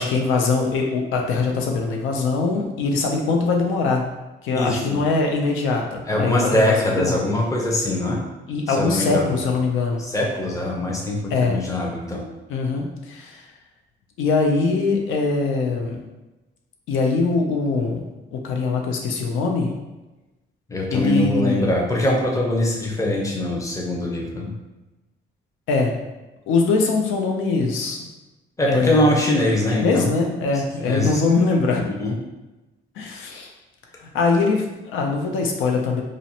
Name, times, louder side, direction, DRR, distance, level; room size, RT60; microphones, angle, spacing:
voice 1, 0.0-4.1 4.4-7.2 8.5-10.0 11.3-11.6 12.5-13.4 14.2-16.0 16.9-18.0 18.3-19.7 20.9-21.7 25.7-25.9 26.5-28.1 28.6-29.1 29.7-31.9 33.0-33.5 34.0-36.0, left 4 dB, 85° left, 1 dB, 0.4 m, -22 dB
voice 2, 4.5-5.0 6.1-8.2 8.7-9.4 10.0-12.2 20.7-24.5 28.6-30.1 30.8-31.2 31.8-32.2, left 1 dB, 15° left, -2 dB, 0.6 m, -22 dB
2.5 x 2.0 x 2.7 m, 1.1 s
cardioid pair, 90°, 20 cm